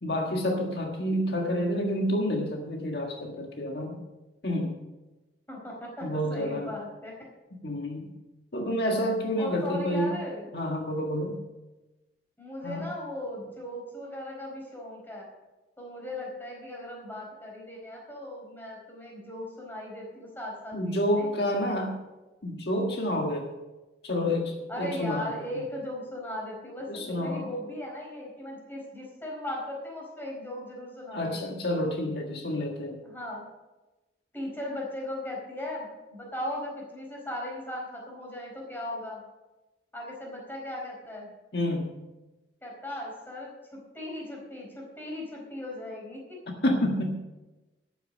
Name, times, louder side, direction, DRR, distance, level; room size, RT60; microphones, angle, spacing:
voice 1, 0.0-4.1 4.4-4.8 6.0-6.7 7.6-8.1 8.5-10.2 10.5-11.4 12.6-12.9 20.7-22.0 22.4-23.5 24.0-25.6 26.9-27.5 31.1-33.0 41.5-42.0 46.6-47.2, left 1 dB, 65° left, 1 dB, 1.6 m, -29 dB
voice 2, 5.5-7.2 9.3-10.5 12.4-15.3 15.8-21.3 24.7-31.5 32.6-32.7 33.0-33.5 34.3-39.2 39.9-41.3 42.6-46.4, left 1 dB, 10° left, -2 dB, 4.5 m, -38 dB
12.5 x 9.1 x 6.5 m, 1.1 s
head